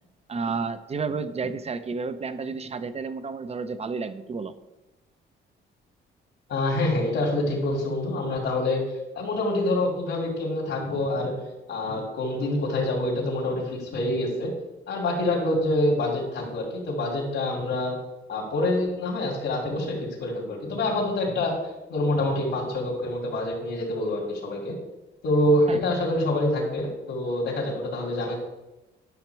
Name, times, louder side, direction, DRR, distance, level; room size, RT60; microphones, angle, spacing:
voice 1, 0.3-4.5 25.7-25.8, right 4 dB, 30° right, 12 dB, 0.7 m, -31 dB
voice 2, 6.5-8.8 9.2-11.3 11.7-14.5 14.9-18.0 18.3-21.5 21.9-24.7 25.2-28.3, left 1 dB, 70° left, -2 dB, 2.3 m, -26 dB
10.5 x 5.8 x 4.6 m, 1.0 s
cardioid pair, 90°, 20 cm